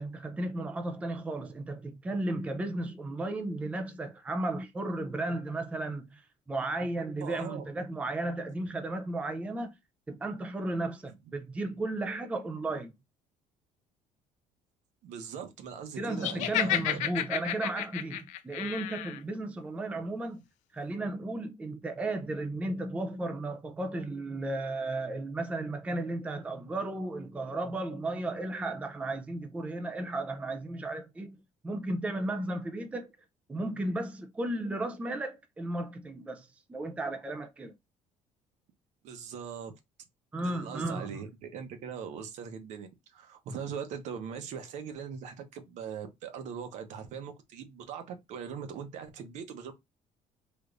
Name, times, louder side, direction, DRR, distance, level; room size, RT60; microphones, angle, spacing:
voice 1, 0.0-9.8 10.1-12.9 16.0-20.4 20.7-31.4 31.6-33.1 33.5-37.7 40.3-41.1, right 2 dB, 10° right, 0.4 m, -34 dB
voice 2, 7.2-7.7 15.0-17.0 39.0-39.7 40.4-49.7, right 7 dB, 65° right, 0.8 m, -41 dB
Laughter, 16.2-19.2, left 12 dB, 75° left, 0.5 m, -32 dB
3.5 x 3.0 x 2.5 m
cardioid pair, 155°, 13 cm